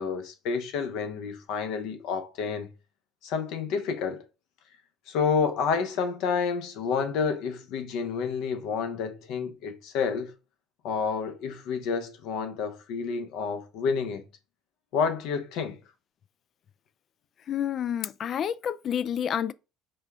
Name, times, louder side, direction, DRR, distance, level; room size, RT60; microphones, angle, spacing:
voice 1, 0.0-2.7 3.2-4.2 5.1-10.3 10.8-14.2 14.9-15.8, left 6 dB, 75° left, 0.9 m, -29 dB
voice 2, 17.5-19.5, left 9 dB, 50° left, 0.3 m, -29 dB
4.9 x 2.4 x 3.5 m
supercardioid pair, 95°, 0 cm